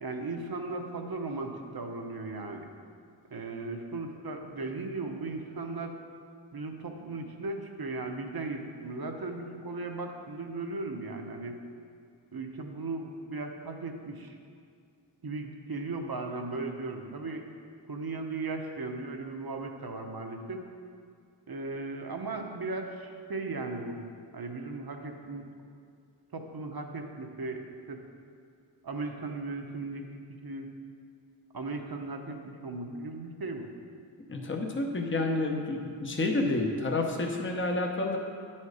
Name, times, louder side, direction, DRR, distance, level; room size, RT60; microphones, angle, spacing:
voice 1, 0.0-2.7 3.3-6.0 6.5-11.6 12.3-14.4 15.2-17.4 17.9-20.7 21.5-24.0 24.3-25.5 26.3-28.0 28.8-30.7 31.5-33.7, right 3 dB, 50° right, 3 dB, 0.9 m, -37 dB
voice 2, 34.3-38.2, left 2 dB, 25° left, 1 dB, 0.8 m, -29 dB
10.0 x 4.3 x 4.8 m, 2.3 s
wide cardioid pair, 45°, 46 cm